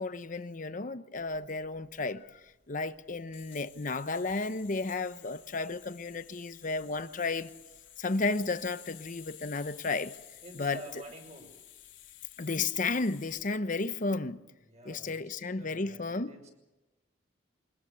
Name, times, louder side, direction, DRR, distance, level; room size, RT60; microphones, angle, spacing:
voice 1, 0.0-2.4 2.7-7.5 8.0-10.1 10.6-10.8 12.4-14.4 14.9-16.3, left 3 dB, 45° left, 0.9 m, -33 dB
sound 1, 1.1-13.5, left 12 dB, 85° left, 3.1 m, -54 dB
voice 2, 10.4-11.5 14.6-16.5, right 1 dB, 35° right, 6.1 m, -49 dB
23.5 x 19.5 x 7.0 m
head